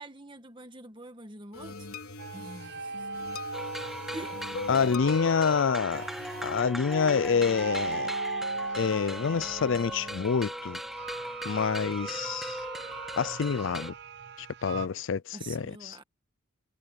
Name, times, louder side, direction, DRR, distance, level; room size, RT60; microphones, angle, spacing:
voice 1, 0.0-1.9 2.3-3.2 4.1-4.6 6.1-6.5 15.3-16.0, right 2 dB, 20° right, 1.7 m, -46 dB
sound 1, 1.5-10.2, left 3 dB, 85° left, 4.4 m, -43 dB
sound 2, 2.2-14.9, right 3 dB, 50° right, 0.6 m, -39 dB
sound 3, 3.5-13.9, equal, ahead, 0.5 m, -39 dB
voice 2, 4.7-6.0 6.4-8.1 8.7-10.8 11.4-12.6 13.2-13.9 14.4-16.0, left 6 dB, 65° left, 0.4 m, -27 dB
head